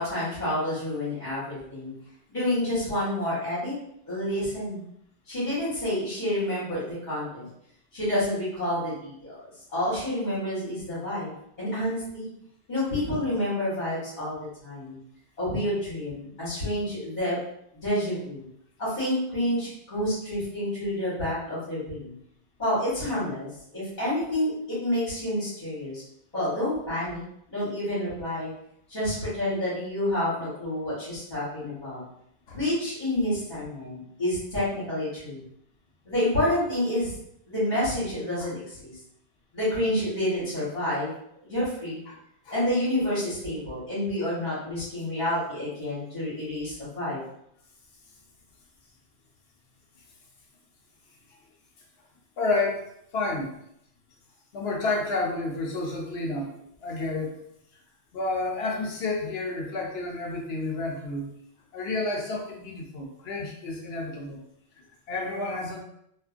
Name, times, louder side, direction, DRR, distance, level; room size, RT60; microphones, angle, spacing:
voice 1, 0.0-1.9 2.3-3.7 4.0-4.8 5.3-7.5 7.9-9.4 9.7-11.3 11.6-12.3 12.7-15.0 15.4-17.4 17.8-18.4 18.8-22.1 22.6-26.0 26.3-27.2 27.5-28.5 28.9-32.0 32.5-35.4 36.0-37.1 37.5-38.9 39.5-41.1 41.4-42.0 42.5-47.2, left 1 dB, 45° left, -12 dB, 1.3 m, -29 dB
voice 2, 52.4-52.8 53.1-53.5 54.5-56.5 56.8-57.5 58.1-61.3 61.7-64.4 65.1-65.8, left 2 dB, 70° left, -1 dB, 0.8 m, -30 dB
2.5 x 2.4 x 2.4 m, 0.74 s
omnidirectional pair, 1.1 m